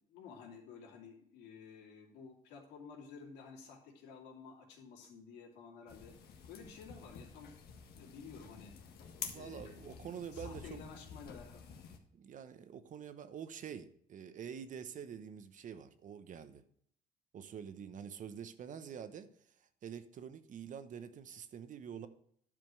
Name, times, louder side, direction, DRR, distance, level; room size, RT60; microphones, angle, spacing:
voice 1, 0.1-6.1 6.5-7.5 8.0-8.7 9.3-9.8 10.3-11.6, left 6 dB, 90° left, 0 dB, 2.8 m, -52 dB
sound 1, 5.9-12.0, left 6 dB, 70° left, 1.6 m, -50 dB
voice 2, 9.2-10.8 12.1-16.6 17.3-19.3 19.6-22.1, right 8 dB, 50° right, 11 dB, 0.9 m, -47 dB
11.0 x 5.2 x 6.2 m, 0.65 s
cardioid pair, 110°, 17 cm